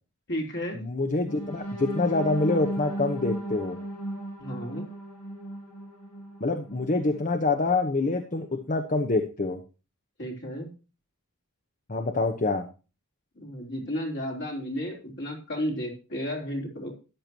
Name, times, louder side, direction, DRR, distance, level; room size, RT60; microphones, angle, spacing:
voice 1, 0.3-0.8 4.4-4.9 10.2-10.7 13.4-16.9, equal, 55° left, 1 dB, 3.9 m, -33 dB
voice 2, 0.8-3.8 6.4-9.6 11.9-12.6, left 3 dB, 35° left, 7 dB, 1.0 m, -26 dB
sound 1, 1.3-7.2 7.7-7.8 8.2-8.4, right 1 dB, 85° left, 7.5 m, -36 dB
13.5 x 10.5 x 3.0 m, 0.32 s
head